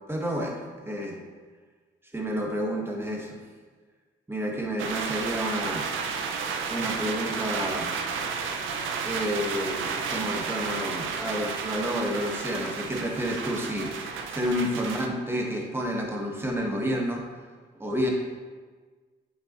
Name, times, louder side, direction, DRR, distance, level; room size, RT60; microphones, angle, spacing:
voice 1, 0.1-1.2 2.1-3.4 4.3-5.9 6.7-7.9 9.0-17.2 17.7-18.1, equal, 10° right, 0 dB, 1.4 m, -30 dB
sound 1, 4.8-15.1, right 5 dB, 80° right, 0.6 m, -32 dB
8.6 x 5.6 x 3.0 m, 1.4 s
cardioid pair, 90°, 20 cm